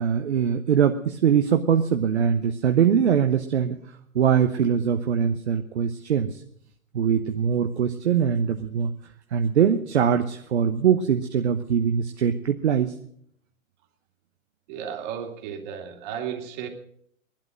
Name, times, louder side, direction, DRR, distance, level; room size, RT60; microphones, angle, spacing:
voice 1, 0.0-3.8 4.1-6.4 6.9-8.9 9.3-12.9, right 8 dB, 55° right, 6 dB, 1.1 m, -22 dB
voice 2, 14.7-16.7, right 8 dB, 35° right, 3 dB, 2.7 m, -34 dB
19.0 x 12.0 x 6.2 m, 0.66 s
figure-of-eight pair, 120°, 41 cm